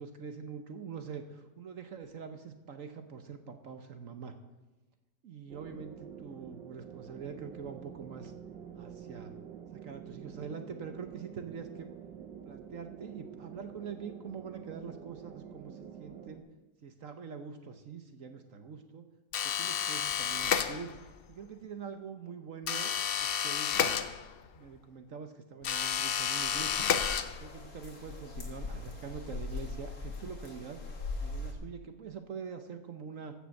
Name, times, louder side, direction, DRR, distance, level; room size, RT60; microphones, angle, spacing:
voice 1, 0.0-4.3 5.2-8.3 8.7-9.3 9.7-11.9 12.4-16.4 16.8-19.0 19.4-20.9 21.3-24.0 24.6-26.9 27.4-30.8 31.2-33.3, right 6 dB, 55° right, 7 dB, 1.1 m, -44 dB
sound 1, 5.5-16.4, right 8 dB, 90° right, 1.6 m, -48 dB
sound 2, 19.3-21.2 22.7-24.6 25.6-27.7, left 7 dB, 85° left, 0.5 m, -31 dB
sound 3, 26.4-31.5, left 3 dB, 55° left, 2.2 m, -41 dB
15.0 x 7.0 x 6.4 m, 1.1 s
omnidirectional pair, 1.9 m